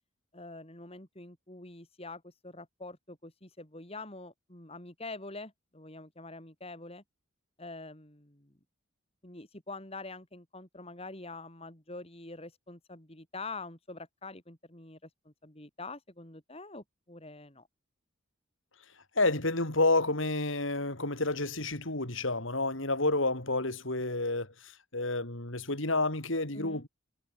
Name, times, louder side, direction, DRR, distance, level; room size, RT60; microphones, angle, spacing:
voice 1, 0.3-7.0 7.6-8.5 9.2-17.7 26.5-26.8, left 3 dB, 30° left, 3.7 m, -45 dB
voice 2, 19.2-24.5 24.9-26.9, left 2 dB, 70° left, 4.5 m, -29 dB
head